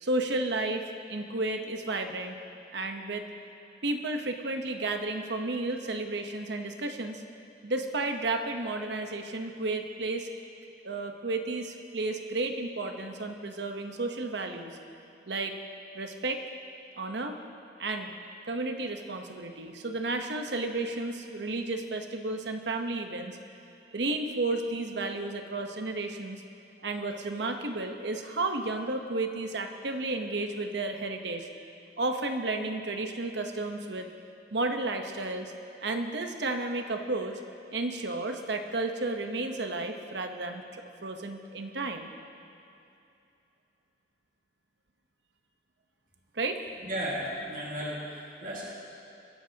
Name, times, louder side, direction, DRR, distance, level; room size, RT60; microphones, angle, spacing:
voice 1, 0.0-2.4 2.7-3.2 3.8-7.2 7.6-10.3 10.8-14.8 15.3-15.5 15.9-16.4 17.0-17.4 17.8-18.1 18.5-23.4 23.9-26.4 26.8-31.5 32.0-34.1 34.5-35.5 35.8-37.4 37.7-42.1 46.3-46.6, right 2 dB, 70° right, 5 dB, 1.0 m, -32 dB
voice 2, 46.8-48.7, equal, 45° right, -5 dB, 2.0 m, -34 dB
22.5 x 11.5 x 2.9 m, 2.8 s
head